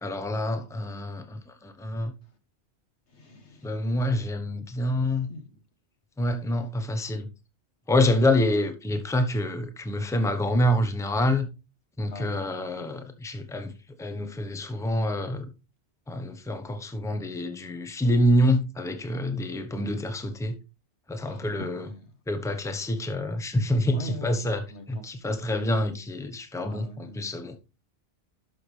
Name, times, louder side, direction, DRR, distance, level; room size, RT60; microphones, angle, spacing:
voice 1, 0.0-2.1 3.6-5.3 6.2-7.3 7.9-11.5 12.0-13.7 14.0-15.5 16.1-20.6 21.1-21.9 22.3-27.6, left 1 dB, 5° left, 0.9 m, -27 dB
voice 2, 3.1-3.8 4.8-4.9 5.3-5.5 12.1-12.8 21.2-22.0 23.9-25.0 26.6-27.3, left 2 dB, 75° left, 1.7 m, -42 dB
11.5 x 6.2 x 3.3 m
omnidirectional pair, 1.2 m